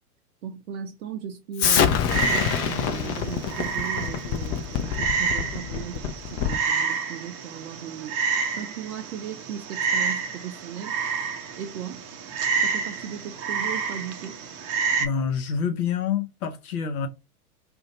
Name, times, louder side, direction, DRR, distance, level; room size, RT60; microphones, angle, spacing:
voice 1, 0.4-8.1 8.6-11.0 11.5-12.0 12.6-14.4, right 9 dB, 75° right, 0.6 m, -37 dB
Explosion, 1.6-6.7, left 8 dB, 30° left, 0.5 m, -26 dB
Frog, 2.1-15.1, right 5 dB, 30° right, 0.6 m, -29 dB
voice 2, 15.0-17.1, left 7 dB, 70° left, 0.8 m, -27 dB
2.5 x 2.2 x 3.9 m
figure-of-eight pair, 90°, 46 cm